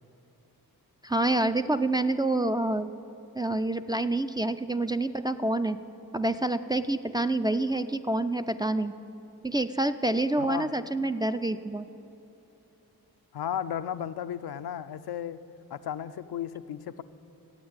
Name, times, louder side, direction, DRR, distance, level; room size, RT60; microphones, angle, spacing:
voice 1, 1.0-2.9 3.3-5.8 6.1-8.9 9.4-11.9, right 2 dB, 10° right, 7 dB, 0.4 m, -27 dB
voice 2, 10.4-10.7 13.3-15.4 15.7-17.0, left 9 dB, 75° left, 11 dB, 0.5 m, -34 dB
14.5 x 8.6 x 8.7 m, 3.0 s
cardioid pair, 70°, 38 cm